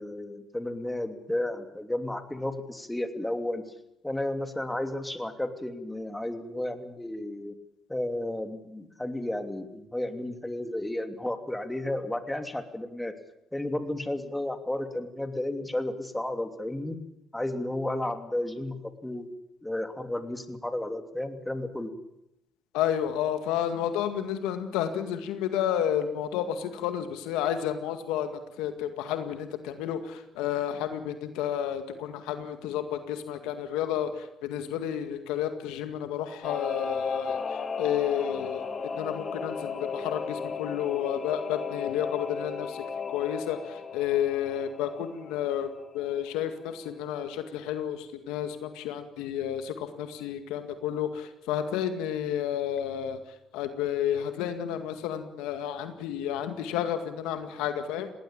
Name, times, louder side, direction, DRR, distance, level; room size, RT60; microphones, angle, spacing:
voice 1, 0.0-3.6 4.0-7.5 7.9-13.1 13.5-17.0 17.3-19.3 19.6-21.9, left 1 dB, 10° left, 7 dB, 2.9 m, -33 dB
voice 2, 22.7-42.8 43.1-45.7 45.9-53.2 53.5-58.1, left 10 dB, 85° left, 8 dB, 2.1 m, -31 dB
Singing / Musical instrument, 36.4-46.5 46.8-46.9, left 5 dB, 45° left, 2.8 m, -35 dB
19.5 x 18.5 x 9.0 m, 0.84 s
supercardioid pair, 65°, 0 cm